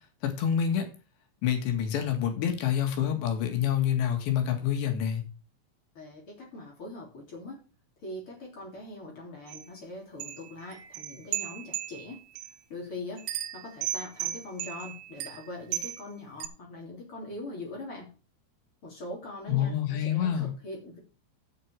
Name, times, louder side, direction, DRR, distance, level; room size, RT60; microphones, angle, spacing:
voice 1, 0.2-0.9 1.4-5.2 19.5-20.5, left 9 dB, 75° left, 5 dB, 3.8 m, -27 dB
voice 2, 6.0-7.6 8.0-12.2 12.7-13.3 13.5-18.1 18.8-21.0, left 2 dB, 30° left, -1 dB, 3.7 m, -42 dB
sound 1, 9.5-9.6 10.2-12.5 13.2-16.0 16.4-16.5, right 13 dB, 90° right, 3.2 m, -36 dB
8.5 x 6.5 x 7.2 m, 0.34 s
omnidirectional pair, 5.2 m